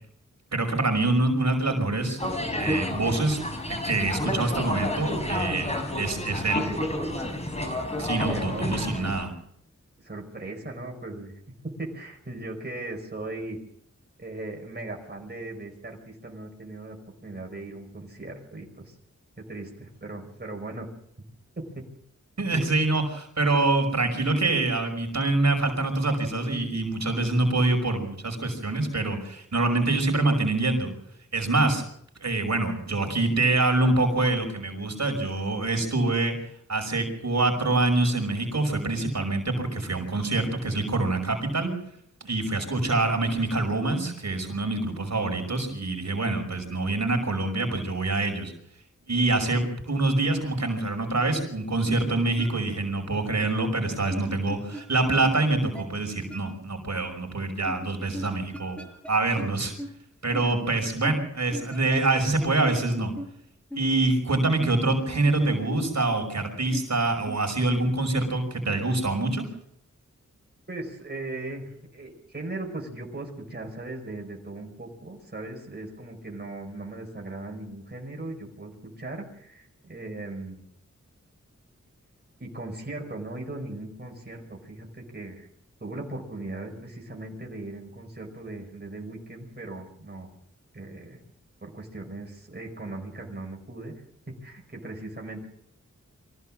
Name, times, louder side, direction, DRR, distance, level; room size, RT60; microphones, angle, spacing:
voice 1, 0.5-2.2 2.6-3.4 3.7-5.7 6.0-6.6 8.0-9.3 22.4-30.9 31.3-31.8 32.2-36.3 36.7-41.7 42.2-48.5 49.1-58.8 59.1-59.7 60.2-63.1 63.7-69.5, right 2 dB, 65° right, 3 dB, 5.6 m, -25 dB
sound 1, 2.2-9.2, left 1 dB, 20° left, 5.0 m, -30 dB
voice 2, 8.2-9.1 10.0-11.3 11.6-13.6 14.2-19.0 19.4-20.9 21.2-21.3 21.6-21.9 22.5-23.0 70.7-80.6 82.4-85.5 85.8-90.3 90.7-91.2 91.6-93.9 94.3-95.5, right 2 dB, 35° right, 1 dB, 5.2 m, -38 dB
sound 2, 52.4-52.5 54.1-55.1 55.3-55.4 55.7-55.9 56.3-56.4 57.7-59.1 59.4-59.5 59.8-59.9 60.3-60.4 61.0-62.5 62.7-62.8 63.2-63.3 63.7-63.8 64.6-66.1 66.3-66.4 66.7-66.8 67.3-67.4, right 1 dB, 5° left, 5.3 m, -38 dB
24.5 x 15.5 x 7.6 m, 0.70 s
wide cardioid pair, 95°, 30 cm